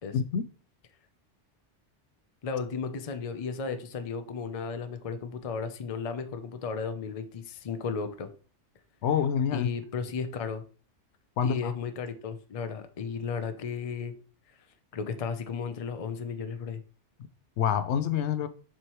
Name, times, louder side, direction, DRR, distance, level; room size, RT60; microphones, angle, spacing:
voice 1, 0.1-0.4 9.0-9.7 11.4-11.7 17.6-18.5, left 8 dB, 70° left, 0.8 m, -27 dB
voice 2, 2.4-8.3 9.5-10.6 11.4-14.1 14.9-16.8, left 5 dB, 40° left, 0.6 m, -34 dB
7.4 x 4.9 x 3.0 m
omnidirectional pair, 1.2 m